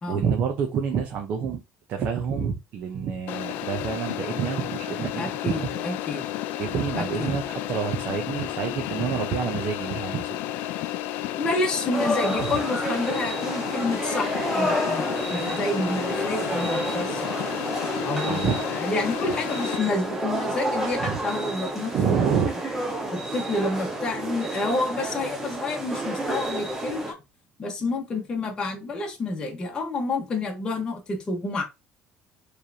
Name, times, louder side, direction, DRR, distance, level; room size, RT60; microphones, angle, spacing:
voice 1, 0.1-1.6 1.9-6.0 6.6-10.4 18.2-18.6 21.0-21.2 21.9-22.5, right 7 dB, 55° right, 0.8 m, -28 dB
sound 1, 3.3-19.8, left 13 dB, 75° left, 0.4 m, -32 dB
voice 2, 5.2-6.2 6.9-7.3 11.4-17.3 18.0-22.4 23.1-27.1 27.6-31.6, left 2 dB, 25° left, 1.2 m, -29 dB
sound 2, 11.9-12.9 14.2-15.5 16.0-16.4 16.6-17.5 18.2-18.3, left 2 dB, 10° left, 0.8 m, -30 dB
sound 3, 11.9-27.1, right 1 dB, 10° right, 1.2 m, -31 dB
4.8 x 3.3 x 2.8 m
cardioid pair, 130°, 3 cm